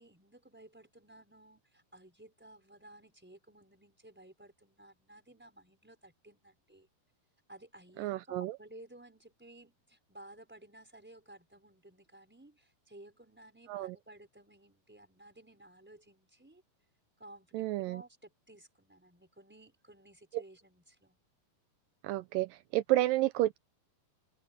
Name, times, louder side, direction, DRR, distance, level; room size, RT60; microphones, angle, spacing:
voice 1, 0.0-6.9 7.5-16.6 17.2-21.2, right 1 dB, 5° right, 4.3 m, -56 dB
voice 2, 8.0-8.6 13.7-14.0 17.5-18.0 20.3-20.4 22.0-23.6, right 17 dB, 90° right, 2.0 m, -31 dB
open air
omnidirectional pair, 4.6 m